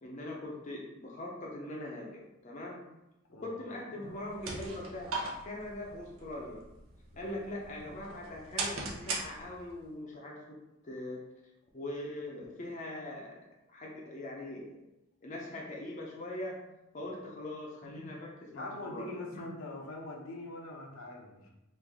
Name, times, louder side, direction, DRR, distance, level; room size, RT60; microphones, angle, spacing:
voice 1, 0.0-2.8 3.4-5.1 5.4-6.6 7.2-10.6 10.8-11.2 11.7-13.4 13.7-14.7 15.2-16.6 16.9-19.4, left 1 dB, 35° left, -2 dB, 0.5 m, -41 dB
sound 1, 4.1-9.8, right 3 dB, 75° right, 0.7 m, -40 dB
voice 2, 18.5-21.5, left 2 dB, 80° left, 0 dB, 0.6 m, -43 dB
3.1 x 2.4 x 3.5 m, 0.93 s
head